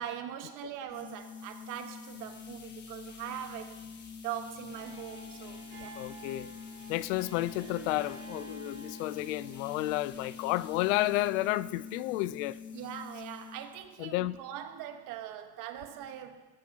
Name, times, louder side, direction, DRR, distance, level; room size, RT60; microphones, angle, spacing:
voice 1, 0.0-3.8 4.2-6.0 12.7-16.5, right 10 dB, 55° right, 1.4 m, -41 dB
sound 1, 0.9-13.8, left 6 dB, 55° left, 4.2 m, -46 dB
sound 2, 1.9-11.3, left 5 dB, 30° left, 1.3 m, -56 dB
Harp, 4.6-12.9, right 4 dB, 40° right, 4.4 m, -51 dB
voice 2, 6.0-6.5 6.9-12.6 14.0-14.3, left 17 dB, 80° left, 0.6 m, -31 dB
19.5 x 14.0 x 2.9 m
supercardioid pair, 130°, 37 cm